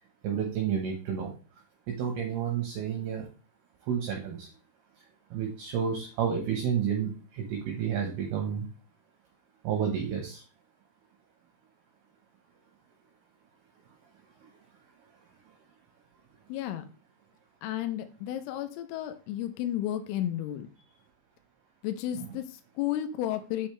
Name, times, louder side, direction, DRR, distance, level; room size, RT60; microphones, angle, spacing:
voice 1, 0.2-1.3 1.9-3.3 3.9-4.5 5.3-8.6 9.6-10.4 22.1-22.3, right 8 dB, 70° right, 2 dB, 2.6 m, -30 dB
voice 2, 16.5-16.9 17.6-20.7 21.8-23.7, left 12 dB, 85° left, 8 dB, 3.4 m, -32 dB
7.6 x 7.1 x 3.2 m, 0.35 s
omnidirectional pair, 5.8 m